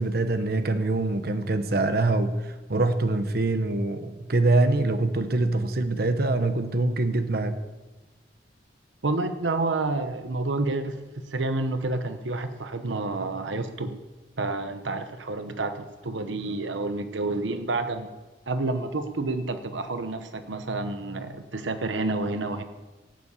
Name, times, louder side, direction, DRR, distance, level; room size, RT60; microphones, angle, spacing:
voice 1, 0.0-7.6, right 2 dB, 55° right, 9 dB, 0.9 m, -24 dB
voice 2, 9.0-13.9 14.4-18.1 18.5-22.6, right 2 dB, 85° right, 9 dB, 1.0 m, -29 dB
18.0 x 7.3 x 8.3 m, 1.2 s
head